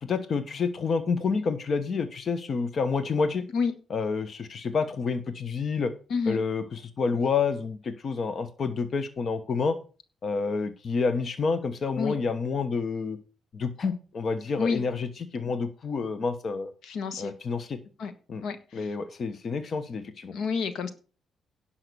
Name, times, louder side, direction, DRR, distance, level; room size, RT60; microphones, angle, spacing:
voice 1, 0.0-3.4 3.9-5.9 6.3-9.8 10.2-13.2 13.5-16.7 17.2-17.8 18.3-18.4 18.7-20.3, left 5 dB, 50° left, 11 dB, 1.1 m, -29 dB
voice 2, 6.1-6.4 12.0-12.2 14.6-14.8 16.8-17.3 18.0-18.1 18.4-18.9 20.3-20.9, left 5 dB, 75° left, 11 dB, 1.4 m, -29 dB
11.0 x 5.8 x 6.8 m, 0.36 s
cardioid pair, 90°, 0 cm